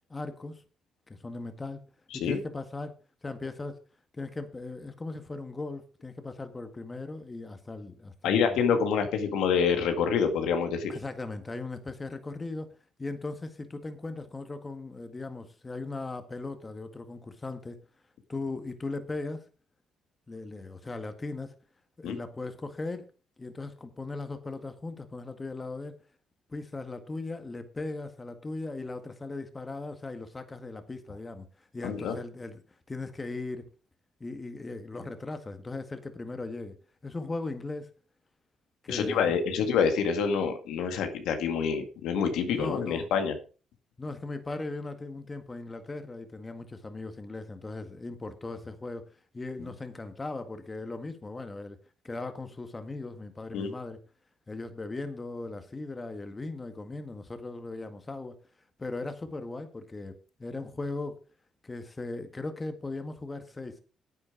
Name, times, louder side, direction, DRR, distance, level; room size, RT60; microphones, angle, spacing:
voice 1, 0.1-0.6 1.1-1.8 2.1-2.9 3.2-3.8 4.1-8.6 10.9-12.7 13.0-17.8 18.3-19.5 20.3-21.5 22.0-23.1 23.4-25.9 26.5-32.6 32.9-33.7 34.2-36.7 37.0-37.9 38.8-39.4 42.5-43.1 44.0-51.8 52.0-54.0 54.5-58.3 58.8-61.2 61.6-63.8, left 3 dB, 20° left, 8 dB, 1.9 m, -38 dB
voice 2, 8.2-11.0 22.0-22.2 31.8-32.2 38.9-43.3 53.5-53.7, left 6 dB, 85° left, 6 dB, 2.0 m, -27 dB
9.9 x 8.7 x 5.0 m, 0.35 s
cardioid pair, 95°, 0 cm